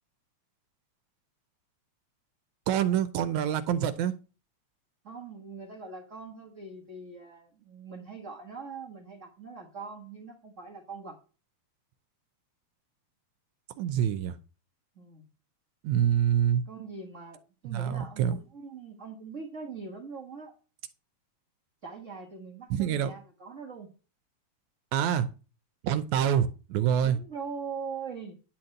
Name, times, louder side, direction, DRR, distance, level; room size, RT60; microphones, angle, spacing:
voice 1, 2.7-4.2 13.8-14.4 15.8-16.6 17.7-18.4 22.7-23.1 24.9-25.3 25.8-27.2, right 9 dB, 80° right, 2.1 m, -26 dB
voice 2, 5.0-11.2 14.9-15.3 16.7-20.5 21.8-23.9 27.0-28.3, right 5 dB, 35° right, 1.3 m, -42 dB
10.5 x 4.4 x 7.7 m
omnidirectional pair, 3.3 m